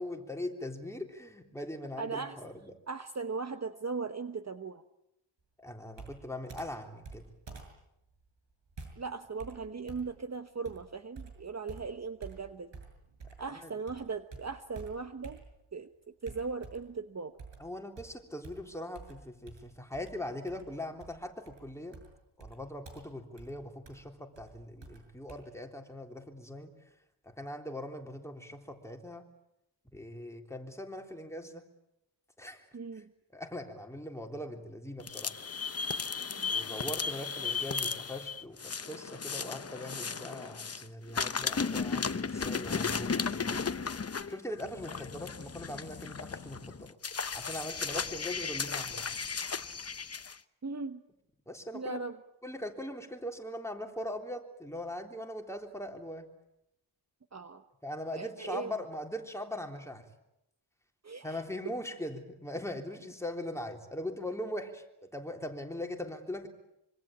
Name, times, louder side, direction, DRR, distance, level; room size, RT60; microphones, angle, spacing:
voice 1, 0.0-2.7 5.6-7.2 13.6-13.7 17.6-22.0 22.4-26.7 27.2-29.3 29.9-31.7 32.4-32.7 33.3-35.3 36.5-43.7 44.3-47.0 47.3-49.1 51.5-52.0 52.4-56.3 57.8-60.1 61.2-66.5, left 1 dB, 5° left, 3 dB, 3.5 m, -41 dB
voice 2, 2.0-2.3 2.9-4.8 9.0-12.7 13.4-15.4 15.7-15.9 16.2-17.3 32.7-33.1 36.3-36.5 50.6-51.0 51.7-52.2 57.3-57.6 58.1-58.7 61.0-61.4, right 4 dB, 35° right, 9 dB, 1.1 m, -38 dB
Computer keyboard, 5.9-13.6 13.9-15.8 16.3-17.0 17.4-25.4, right 4 dB, 65° right, 7.0 m, -50 dB
sound 1, 35.0-40.8 41.1-50.3, left 5 dB, 30° left, 0.9 m, -35 dB
25.5 x 25.0 x 8.7 m, 0.83 s
wide cardioid pair, 120°, 47 cm